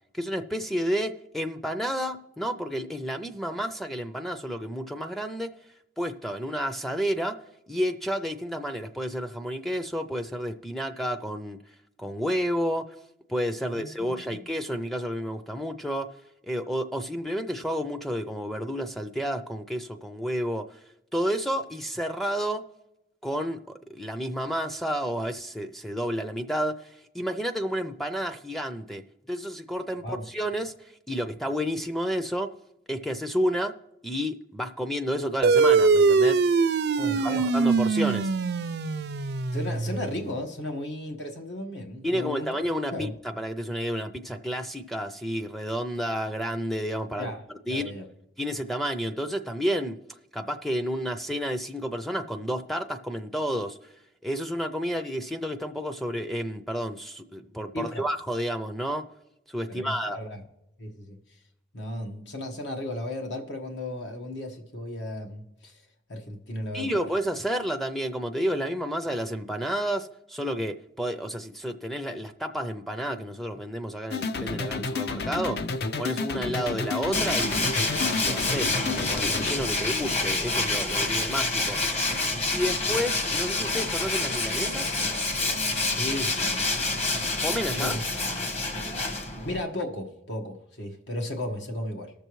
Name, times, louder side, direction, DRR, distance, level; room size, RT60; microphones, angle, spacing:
voice 1, 0.1-5.5 6.0-7.4 7.7-11.6 12.0-12.9 13.3-16.1 16.4-20.8 21.1-22.6 23.2-23.6 23.9-30.7 31.1-32.5 32.9-33.8 34.0-36.4 37.2-38.3 42.0-47.3 47.7-47.9 48.4-50.0 50.3-53.8 54.2-59.1 59.5-60.2 66.7-75.7 76.0-77.7 78.1-81.8 82.5-85.0 87.4-88.0, equal, ahead, 0.4 m, -30 dB
voice 2, 13.7-14.5 30.0-30.3 37.0-37.4 39.5-42.5 42.9-43.1 47.2-47.4 47.7-48.1 57.7-58.0 59.7-60.4 60.8-61.2 61.7-65.8 66.1-67.0 79.8-79.9 85.9-87.2 87.8-88.0 89.4-92.1, left 1 dB, 80° left, 1.4 m, -35 dB
sound 1, 35.4-40.3, right 4 dB, 60° right, 0.4 m, -22 dB
sound 2, 74.1-79.5, left 4 dB, 60° left, 0.5 m, -31 dB
Tools, 77.1-89.6, left 3 dB, 35° left, 1.1 m, -27 dB
19.5 x 6.7 x 3.1 m
head